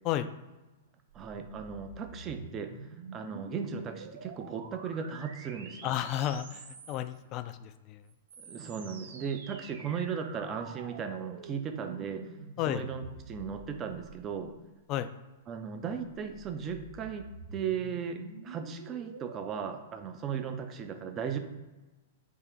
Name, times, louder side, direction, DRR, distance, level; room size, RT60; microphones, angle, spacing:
voice 1, 1.1-2.7 3.1-5.9 8.4-12.3 12.7-14.5 15.5-21.4, right 7 dB, 30° right, 6 dB, 0.5 m, -36 dB
sound 1, 1.1-7.2 8.1-14.7 15.7-19.6, right 4 dB, 65° right, 0.7 m, -48 dB
voice 2, 5.8-8.0 12.6-12.8 14.9-15.1, left 11 dB, 40° left, 11 dB, 0.3 m, -32 dB
3.7 x 3.0 x 4.3 m, 1.1 s
figure-of-eight pair, 105°, 0 cm